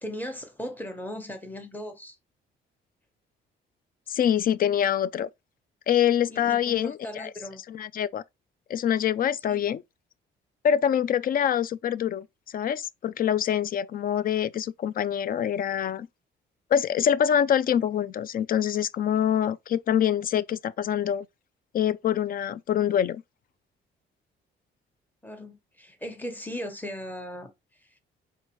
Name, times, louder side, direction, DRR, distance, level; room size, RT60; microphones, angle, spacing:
voice 1, 0.0-2.2 6.3-7.6 9.5-9.6 25.2-27.5, equal, 10° left, 1.2 m, -37 dB
voice 2, 4.1-5.3 5.9-7.3 7.7-8.2 8.7-9.8 10.6-12.3 12.5-16.1 16.7-21.3 21.7-23.2, left 9 dB, 45° left, 0.4 m, -25 dB
4.6 x 3.5 x 3.0 m
cardioid pair, 90°, 20 cm